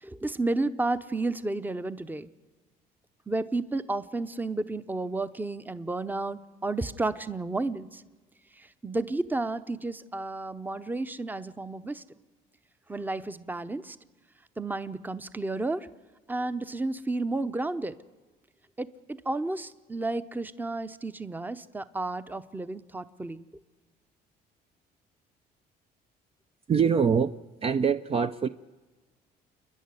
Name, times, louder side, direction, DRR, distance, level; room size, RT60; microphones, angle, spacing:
voice 1, 0.0-2.3 3.3-8.0 8.5-12.0 12.9-14.0 14.6-15.9 16.3-17.9 18.8-23.4, right 2 dB, 10° right, 13 dB, 0.8 m, -32 dB
voice 2, 26.7-27.3 27.6-28.5, right 6 dB, 35° right, 10 dB, 0.6 m, -24 dB
29.0 x 10.5 x 9.6 m, 1.3 s
cardioid pair, 110°, 17 cm